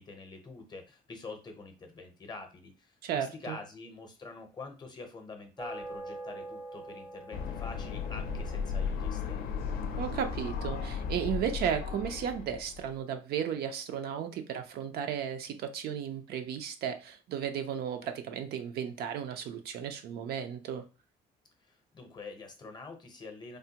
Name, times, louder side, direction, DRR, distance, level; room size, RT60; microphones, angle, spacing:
voice 1, 0.0-9.6 21.7-23.6, left 3 dB, 25° left, 5 dB, 0.6 m, -46 dB
voice 2, 3.0-3.6 9.9-20.8, right 8 dB, 75° right, 7 dB, 0.5 m, -34 dB
sound 1, 5.6-11.1, right 2 dB, 10° right, 0.4 m, -46 dB
sound 2, 7.3-12.9, left 6 dB, 70° left, 0.5 m, -35 dB
3.4 x 2.1 x 2.8 m, 0.32 s
cardioid pair, 130°, 16 cm